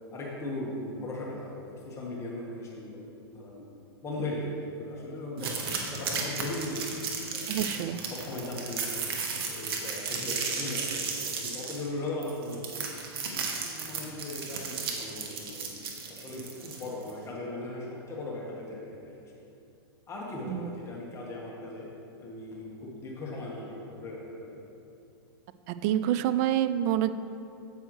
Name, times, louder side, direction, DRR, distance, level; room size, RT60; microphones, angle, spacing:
voice 1, 0.1-3.0 3.3-3.7 4.0-5.6 5.9-7.5 7.9-9.1 9.5-12.6 13.3-15.7 16.1-19.4 20.1-21.9 22.2-24.6, left 1 dB, 20° left, -4 dB, 1.3 m, -38 dB
sound 1, 5.4-17.1, right 5 dB, 65° right, 1.3 m, -34 dB
voice 2, 7.5-8.0 20.5-20.7 25.7-27.1, right 11 dB, 40° right, 12 dB, 0.3 m, -27 dB
9.0 x 7.7 x 3.2 m, 2.7 s
hypercardioid pair, 130°, 13 cm